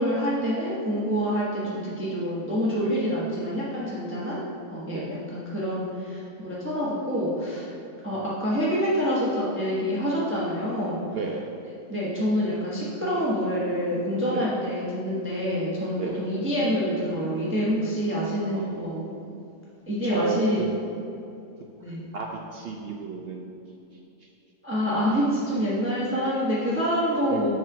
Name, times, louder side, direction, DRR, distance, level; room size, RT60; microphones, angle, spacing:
voice 1, 0.0-4.4 4.7-7.7 8.0-11.0 11.9-19.0 19.9-20.6 21.8-22.0 24.6-27.5, equal, 10° right, -7 dB, 1.0 m, -27 dB
voice 2, 11.1-11.5 14.3-14.5 15.9-16.2 18.5-19.2 20.0-20.7 21.9-23.5 24.2-24.3 27.3-27.4, right 4 dB, 60° right, 1 dB, 0.6 m, -33 dB
7.4 x 4.0 x 6.0 m, 2.7 s
omnidirectional pair, 1.5 m